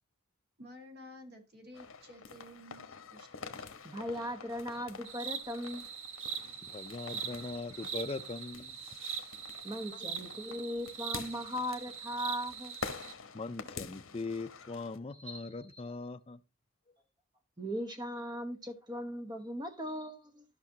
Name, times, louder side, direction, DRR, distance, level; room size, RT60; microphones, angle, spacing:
voice 1, 0.6-2.9 3.1-3.9, left 1 dB, 45° right, 1.9 m, -52 dB
sound 1, 1.7-15.0, left 5 dB, 70° left, 1.1 m, -48 dB
voice 2, 3.8-5.9 9.6-12.8 15.2-15.5 17.6-20.4, equal, 20° right, 1.1 m, -38 dB
sound 2, 5.1-13.1, right 7 dB, 65° right, 0.9 m, -42 dB
voice 3, 6.6-8.8 9.9-10.1 13.3-16.4, left 3 dB, 25° left, 0.4 m, -41 dB
13.5 x 5.9 x 2.8 m
head